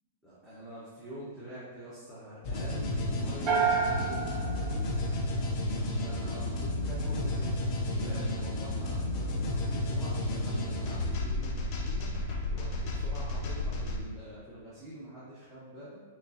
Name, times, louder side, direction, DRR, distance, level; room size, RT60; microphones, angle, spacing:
voice 1, 0.2-4.9 5.7-7.7 8.0-16.0, right 1 dB, 5° left, -11 dB, 1.0 m, -46 dB
sound 1, 2.4-14.0, left 1 dB, 40° left, 0.6 m, -32 dB
sound 2, 3.5-5.7, right 5 dB, 30° right, 0.8 m, -30 dB
4.3 x 3.1 x 2.6 m, 1.5 s
hypercardioid pair, 140°, 0 cm